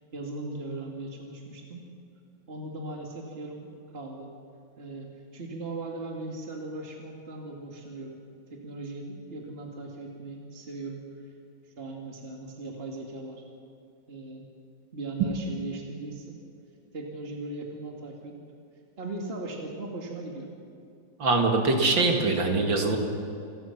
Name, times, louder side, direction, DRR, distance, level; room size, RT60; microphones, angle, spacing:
voice 1, 0.1-1.8 2.5-4.3 4.8-8.2 8.5-11.3 11.8-13.4 14.1-14.5 14.9-16.4 16.9-18.4 19.0-20.5, right 2 dB, 30° right, 1 dB, 2.3 m, -38 dB
voice 2, 21.2-23.0, right 3 dB, 90° right, 3 dB, 3.0 m, -23 dB
27.5 x 18.5 x 5.9 m, 2.5 s
omnidirectional pair, 2.0 m